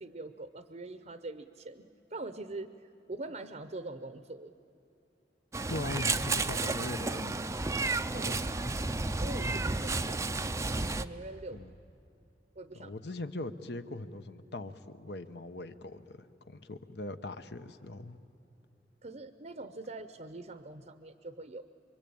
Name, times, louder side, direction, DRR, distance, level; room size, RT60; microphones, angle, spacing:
voice 1, 0.0-4.5 8.1-8.4 9.2-10.6 10.9-11.6 12.6-12.9 19.0-21.7, right 2 dB, 40° right, 11 dB, 0.8 m, -43 dB
Meow, 5.5-11.0, right 3 dB, 15° right, 0.5 m, -32 dB
voice 2, 5.7-7.5 8.1-8.4 11.5-11.7 12.7-18.2, left 2 dB, 65° left, 10 dB, 1.0 m, -41 dB
26.5 x 24.0 x 8.7 m, 2.7 s
head